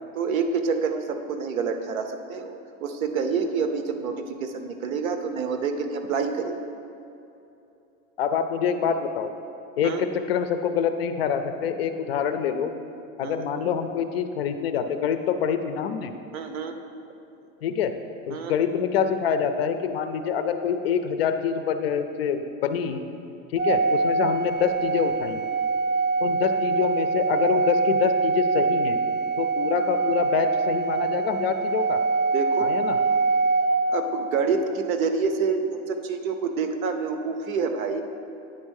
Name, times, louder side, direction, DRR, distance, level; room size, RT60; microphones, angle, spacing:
voice 1, 0.1-6.6 9.8-10.1 13.2-13.5 16.3-16.7 18.3-18.5 32.3-32.7 33.9-38.0, right 5 dB, 80° right, 7 dB, 0.9 m, -27 dB
voice 2, 8.2-9.3 9.8-12.7 13.2-16.1 17.6-17.9 18.3-23.0 23.5-25.4 26.2-29.0 29.4-32.0 32.6-33.0, left 7 dB, 50° left, 8 dB, 0.4 m, -26 dB
Organ, 23.6-34.4, right 4 dB, 20° right, 0.5 m, -24 dB
9.5 x 3.6 x 6.3 m, 2.8 s
supercardioid pair, 170°, 41 cm